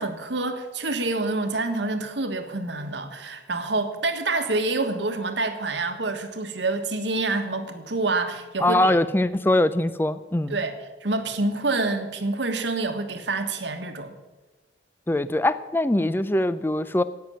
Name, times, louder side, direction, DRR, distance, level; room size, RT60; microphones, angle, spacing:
voice 1, 0.0-9.0 10.5-10.7 11.0-14.1, right 3 dB, 80° right, 7 dB, 1.4 m, -27 dB
voice 2, 8.6-10.6 15.1-17.0, left 1 dB, 10° left, 15 dB, 0.4 m, -22 dB
10.5 x 9.0 x 8.7 m, 1.3 s
head